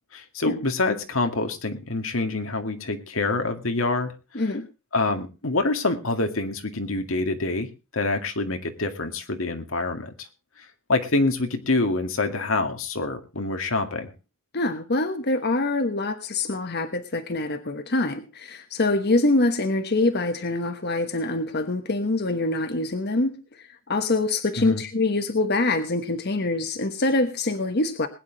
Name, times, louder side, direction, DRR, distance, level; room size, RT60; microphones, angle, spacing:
voice 1, 0.1-4.1 4.9-7.7 7.9-10.3 10.9-14.1 24.6-24.8, left 2 dB, 85° left, 6 dB, 2.1 m, -26 dB
voice 2, 4.3-4.7 14.5-23.4 23.9-28.1, left 2 dB, 55° left, 8 dB, 1.2 m, -25 dB
20.5 x 9.7 x 3.9 m, 0.31 s
head